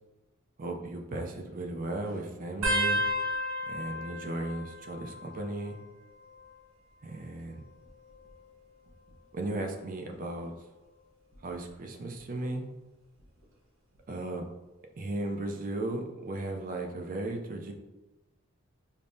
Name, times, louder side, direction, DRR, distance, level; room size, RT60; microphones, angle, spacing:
voice 1, 0.6-3.0 3.7-5.8 7.0-7.6 9.3-10.5 11.4-12.6 14.1-14.4 15.0-17.7, right 2 dB, 40° right, 3 dB, 0.4 m, -36 dB
sound 1, 2.6-5.8 6.1-6.7 7.7-9.2 9.8-10.1 11.3-11.7 13.2-13.3, equal, 70° right, 0.9 m, -34 dB
5.1 x 2.1 x 2.6 m, 1.1 s
head